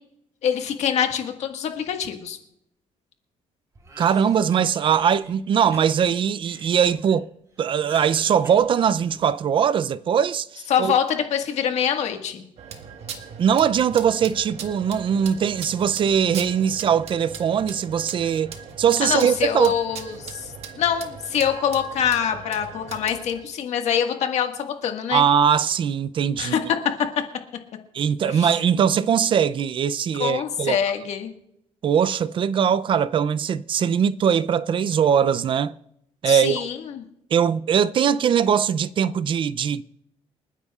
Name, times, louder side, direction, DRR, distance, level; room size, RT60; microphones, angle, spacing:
voice 1, 0.4-2.4 10.7-12.4 19.0-25.2 26.4-26.6 28.3-28.5 30.2-31.3 36.2-37.0, left 8 dB, 75° left, 1.6 m, -25 dB
Cough, 3.7-5.3 5.7-7.2 7.5-9.4, right 2 dB, 30° right, 4.0 m, -45 dB
voice 2, 4.0-7.3 7.6-10.9 13.4-19.7 25.1-26.7 27.9-30.8 31.8-35.7 36.2-36.7 37.3-39.8, right 8 dB, 50° right, 0.4 m, -21 dB
sound 1, 12.6-23.4, right 6 dB, 65° right, 1.5 m, -39 dB
29.0 x 9.7 x 2.4 m
cardioid pair, 125°, 11 cm